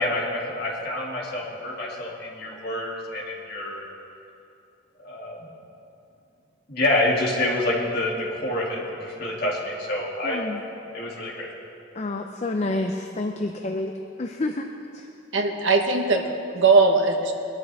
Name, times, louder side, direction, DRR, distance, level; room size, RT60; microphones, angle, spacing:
voice 1, 0.0-3.8 5.0-5.5 6.7-10.4 10.9-11.5, left 1 dB, 50° left, -4 dB, 2.7 m, -27 dB
voice 2, 10.2-10.6 12.0-13.9 14.2-14.7, left 2 dB, 35° left, 4 dB, 0.5 m, -28 dB
voice 3, 15.3-17.3, right 3 dB, 70° right, 3 dB, 1.2 m, -20 dB
22.0 x 12.5 x 3.5 m, 2.7 s
head